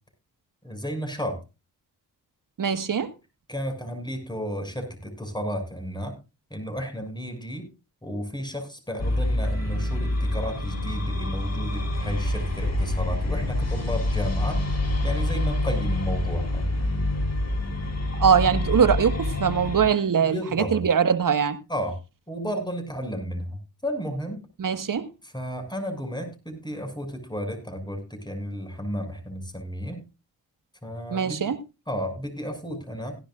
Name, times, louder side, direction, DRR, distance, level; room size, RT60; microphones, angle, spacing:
voice 1, 0.6-1.4 3.5-6.1 6.5-7.7 8.0-14.7 15.0-16.7 18.5-18.7 20.3-20.8 21.7-22.0 22.3-23.6 23.8-24.4 25.2-30.0 30.8-31.4 31.9-33.2, equal, 10° left, 7.0 m, -32 dB
voice 2, 2.6-3.1 18.2-19.1 19.4-21.6 24.6-25.1 31.1-31.6, right 7 dB, 50° right, 1.6 m, -22 dB
sound 1, 9.0-19.9, left 1 dB, 40° left, 3.9 m, -26 dB
17.5 x 11.5 x 2.5 m
supercardioid pair, 40°, 41 cm